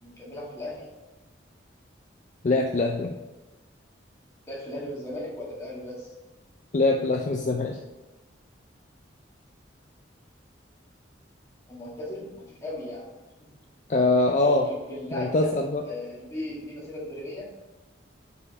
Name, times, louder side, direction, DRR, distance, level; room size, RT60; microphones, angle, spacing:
voice 1, 0.0-0.9 4.5-6.1 11.7-13.1 14.4-15.5 15.8-17.5, left 1 dB, 15° left, -6 dB, 1.8 m, -37 dB
voice 2, 2.4-3.1 6.7-7.8 13.9-14.7 15.1-15.8, left 2 dB, 40° left, 3 dB, 0.4 m, -23 dB
4.9 x 4.9 x 4.8 m, 1.1 s
head